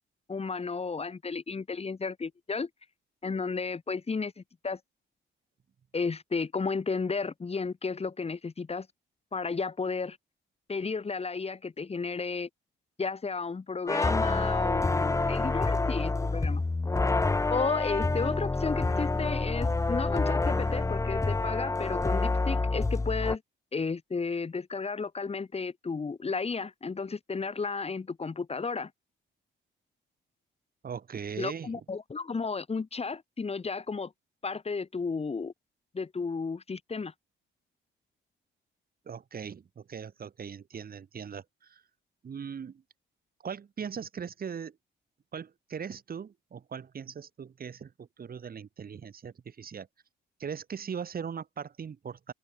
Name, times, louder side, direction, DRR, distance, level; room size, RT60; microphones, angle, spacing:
voice 1, 0.3-2.7 3.2-4.8 5.9-8.9 9.3-10.2 10.7-12.5 13.0-16.6 17.5-23.4 23.7-28.9 31.4-34.1 34.4-35.5 35.9-37.1, left 4 dB, 30° left, 3.7 m, -33 dB
sound 1, 13.9-23.3, left 3 dB, 15° left, 0.8 m, -27 dB
voice 2, 30.8-31.7 39.1-41.8 42.2-42.8 43.4-44.8 45.3-49.9 50.4-52.3, right 7 dB, 50° right, 7.5 m, -39 dB
open air
cardioid pair, 90°, 20 cm